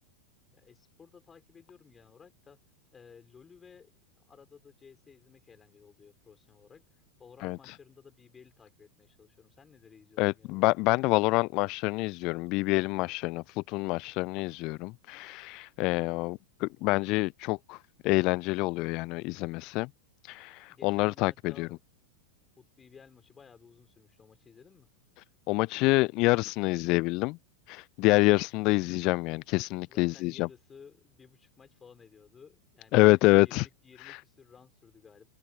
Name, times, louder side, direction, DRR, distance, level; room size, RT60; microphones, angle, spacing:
voice 1, 0.5-2.6 2.9-3.9 4.2-10.7 20.7-21.7 22.6-24.9 29.8-33.0 33.4-35.3, left 6 dB, 20° left, 6.3 m, -56 dB
voice 2, 7.4-7.7 10.2-17.8 18.0-19.9 20.2-21.7 25.5-27.4 27.7-30.5 32.9-33.7 34.0-34.2, left 24 dB, 40° left, 0.5 m, -27 dB
figure-of-eight pair, 90°, 0 cm